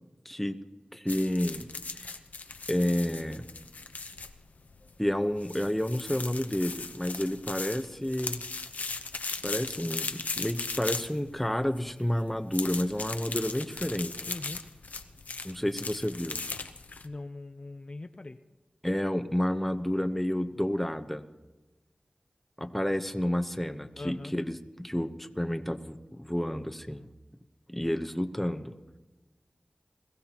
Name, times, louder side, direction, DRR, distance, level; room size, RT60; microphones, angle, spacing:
voice 1, 0.2-0.6 0.9-1.7 2.0-2.1 2.7-3.4 5.0-8.4 9.4-14.1 15.4-16.4 18.8-21.2 22.6-27.0 27.7-28.7, left 1 dB, 5° left, 7 dB, 1.0 m, -30 dB
sound 1, 1.1-17.1, left 4 dB, 85° left, 0.9 m, -38 dB
voice 2, 14.3-14.6 17.0-18.4 24.0-24.3, left 2 dB, 45° left, 9 dB, 0.6 m, -41 dB
21.5 x 15.5 x 3.0 m, 1.2 s
cardioid pair, 45°, 3 cm